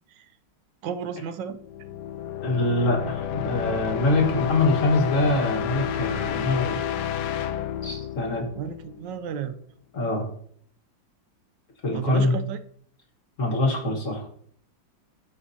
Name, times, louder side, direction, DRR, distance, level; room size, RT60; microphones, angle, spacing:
voice 1, 0.8-1.6 8.6-9.6 11.9-12.6, right 7 dB, 75° right, 10 dB, 1.3 m, -33 dB
sound 1, 1.6-9.3, left 10 dB, 70° left, 1.1 m, -30 dB
voice 2, 2.4-6.8 7.8-8.5 9.9-10.3 11.8-12.3 13.4-14.2, left 2 dB, 45° left, 1 dB, 1.8 m, -24 dB
13.0 x 5.1 x 2.8 m, 0.63 s
omnidirectional pair, 2.0 m